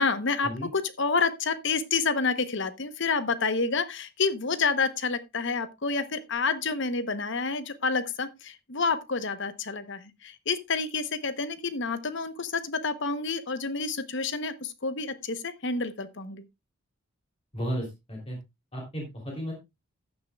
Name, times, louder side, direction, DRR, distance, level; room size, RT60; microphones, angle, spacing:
voice 1, 0.0-16.4, left 4 dB, 60° left, 1.0 m, -29 dB
voice 2, 17.5-18.4 18.7-19.5, equal, 30° left, 3.4 m, -34 dB
14.0 x 9.7 x 2.4 m
head